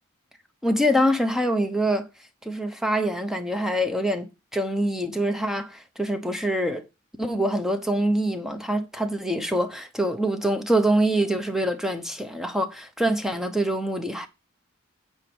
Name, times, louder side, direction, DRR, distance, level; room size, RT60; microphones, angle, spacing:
voice 1, 0.6-2.1 2.4-6.8 7.2-14.3, right 1 dB, ahead, 0.9 m, -25 dB
9.0 x 4.5 x 5.4 m
head